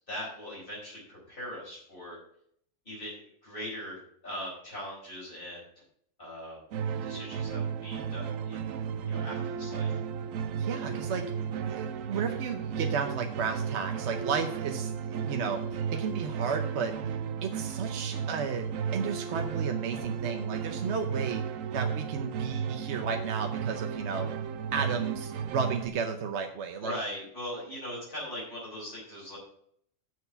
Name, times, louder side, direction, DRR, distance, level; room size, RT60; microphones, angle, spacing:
voice 1, 0.1-2.2 2.8-5.6 6.2-6.6 7.0-8.6 9.1-10.0 26.8-29.4, equal, 40° left, -5 dB, 4.6 m, -40 dB
sound 1, 6.7-25.9, right 7 dB, 85° right, 1.1 m, -34 dB
voice 2, 10.5-11.2 11.7-16.9 17.4-18.7 18.9-21.4 21.7-24.3 24.7-26.9, right 6 dB, 65° right, 5 dB, 1.0 m, -33 dB
6.9 x 6.4 x 6.8 m, 0.66 s
omnidirectional pair, 1.3 m